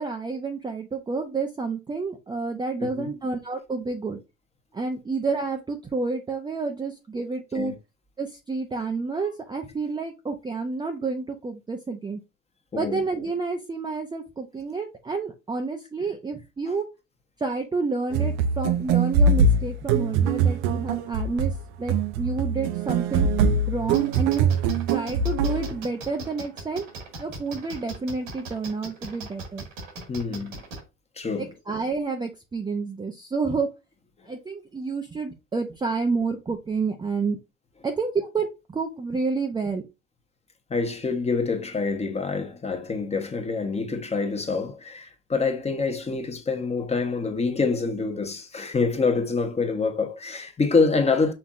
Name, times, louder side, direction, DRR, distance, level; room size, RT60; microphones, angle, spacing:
voice 1, 0.0-4.2 4.7-7.7 8.2-12.2 12.8-16.9 17.4-21.5 21.8-23.3 23.7-24.5 24.9-26.8 27.2-29.6 31.4-33.7 34.3-37.4 37.8-39.8, right 4 dB, 10° right, 0.6 m, -29 dB
voice 2, 2.8-3.2 7.5-7.8 12.7-13.0 30.1-30.6 31.2-31.6 34.2-34.3 40.7-51.3, left 4 dB, 15° left, 1.0 m, -26 dB
sound 1, 18.1-25.7, right 4 dB, 60° right, 0.7 m, -23 dB
sound 2, 23.9-30.8, right 3 dB, 85° right, 2.1 m, -38 dB
5.8 x 3.5 x 2.5 m
hypercardioid pair, 85°, 37 cm